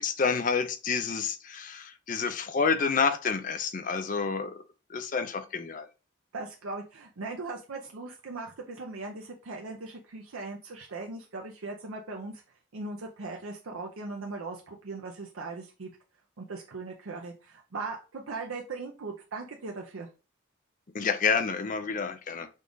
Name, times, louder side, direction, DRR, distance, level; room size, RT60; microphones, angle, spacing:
voice 1, 0.0-4.6 4.9-5.9 20.9-22.5, left 5 dB, 40° left, 0.5 m, -29 dB
voice 2, 6.3-12.4 12.7-15.9 16.4-20.1, right 3 dB, 85° right, 0.6 m, -39 dB
5.3 x 2.4 x 3.8 m
head